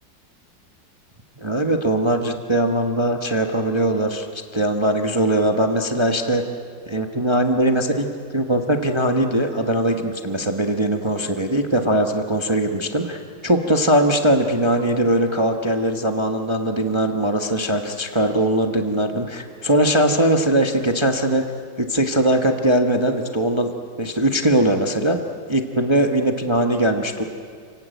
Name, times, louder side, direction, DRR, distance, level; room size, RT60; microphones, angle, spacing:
voice 1, 1.4-4.3 4.5-6.4 6.9-8.1 8.3-21.4 21.8-23.7 24.0-25.2 25.5-27.2, right 1 dB, 20° right, 4 dB, 1.0 m, -20 dB
29.5 x 16.5 x 9.2 m, 2.1 s
omnidirectional pair, 2.1 m